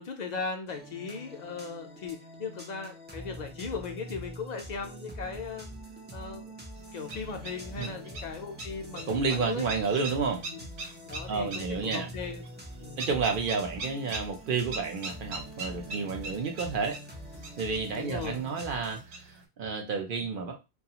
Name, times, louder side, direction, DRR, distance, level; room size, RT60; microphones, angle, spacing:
voice 1, 0.0-5.7 6.1-6.5 6.9-9.7 10.5-10.6 11.1-12.4 12.8-13.0 17.9-18.4, left 5 dB, 55° left, 4 dB, 0.5 m, -38 dB
sound 1, 0.7-19.0, equal, 15° right, 0.3 m, -45 dB
sound 2, 6.8-19.4, right 2 dB, 85° right, 1.0 m, -43 dB
voice 2, 9.1-10.4 11.3-12.1 13.0-17.0 17.6-20.6, right 5 dB, 60° right, 3 dB, 0.7 m, -31 dB
2.3 x 2.3 x 2.8 m, 0.26 s
omnidirectional pair, 1.1 m